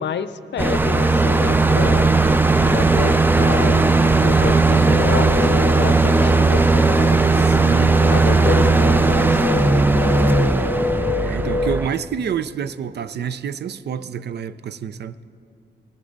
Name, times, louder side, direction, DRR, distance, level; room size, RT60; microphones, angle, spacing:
voice 1, 0.0-2.2 2.7-3.8 4.2-7.3 8.1-10.2, left 7 dB, 80° left, 12 dB, 0.5 m, -29 dB
sound 1, 0.6-11.9, right 3 dB, 10° right, 0.4 m, -17 dB
voice 2, 2.6-3.1 7.5-8.0 11.2-15.2, right 8 dB, 70° right, 14 dB, 0.5 m, -28 dB
sound 2, 4.9-12.0, left 5 dB, 30° left, 0.7 m, -29 dB
19.5 x 14.5 x 3.9 m, 2.6 s
wide cardioid pair, 120°, 18 cm